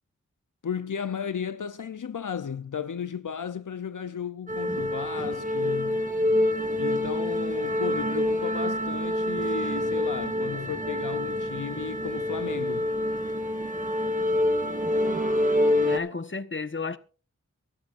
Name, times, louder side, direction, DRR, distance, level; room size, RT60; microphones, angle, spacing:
voice 1, 0.6-6.0 6.8-12.9, left 7 dB, 75° left, 0.7 m, -34 dB
sound 1, 4.5-16.0, left 1 dB, 25° right, 3.1 m, -27 dB
voice 2, 15.9-17.0, left 4 dB, 40° left, 1.3 m, -32 dB
24.0 x 12.0 x 2.5 m
wide cardioid pair, 65°, 31 cm